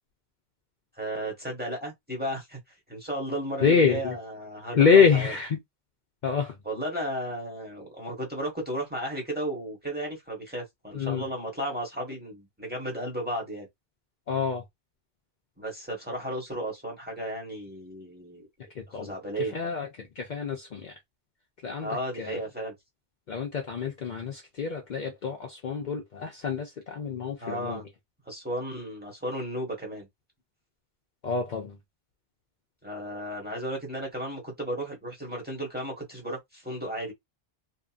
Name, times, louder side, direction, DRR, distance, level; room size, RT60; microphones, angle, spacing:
voice 1, 1.0-2.6 2.9-5.3 6.6-13.7 15.6-18.5 18.9-19.6 21.8-22.7 27.4-27.9 28.3-30.1 32.8-37.1, right 1 dB, 10° right, 1.2 m, -34 dB
voice 2, 3.6-4.1 4.7-5.6 6.2-6.6 10.9-11.2 14.3-14.6 18.8-19.1 19.4-20.9 21.6-21.9 22.2-22.4 23.3-27.8 31.2-31.8, left 6 dB, 55° left, 0.7 m, -26 dB
2.8 x 2.5 x 2.4 m
omnidirectional pair, 1.0 m